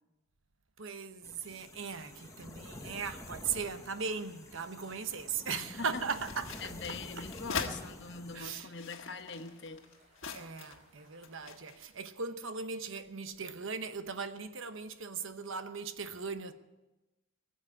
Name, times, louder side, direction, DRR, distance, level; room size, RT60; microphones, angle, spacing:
voice 1, 0.8-6.6 8.3-8.7 10.3-16.5, right 5 dB, 70° right, 1.0 m, -38 dB
sound 1, 1.2-8.6, left 1 dB, 15° left, 0.9 m, -49 dB
sound 2, 1.9-11.4, right 1 dB, 30° right, 7.0 m, -65 dB
voice 2, 5.5-6.0 6.6-9.9, left 4 dB, 55° left, 1.1 m, -42 dB
sound 3, 6.0-7.8 8.5-10.9 11.2-11.9, left 5 dB, 70° left, 1.4 m, -42 dB
19.0 x 7.6 x 9.7 m
head